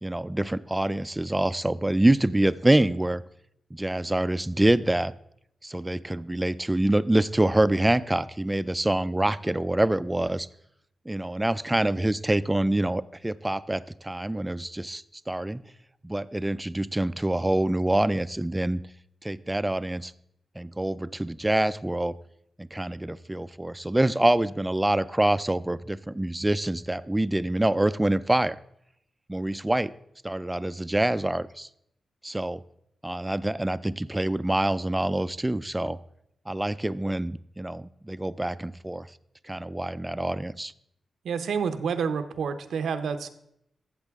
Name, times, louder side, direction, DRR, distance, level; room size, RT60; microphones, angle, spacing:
voice 1, 0.0-3.2 3.7-5.1 5.6-10.5 11.1-15.6 16.0-18.8 19.2-20.1 20.6-22.1 22.6-28.6 29.3-29.9 30.2-31.7 32.2-32.6 33.0-36.0 36.5-39.1 39.4-40.7, right 1 dB, 10° right, 16 dB, 0.3 m, -26 dB
voice 2, 41.2-43.3, right 6 dB, 90° right, 10 dB, 0.7 m, -28 dB
13.5 x 7.5 x 3.5 m, 0.75 s
wide cardioid pair, 115°, 0 cm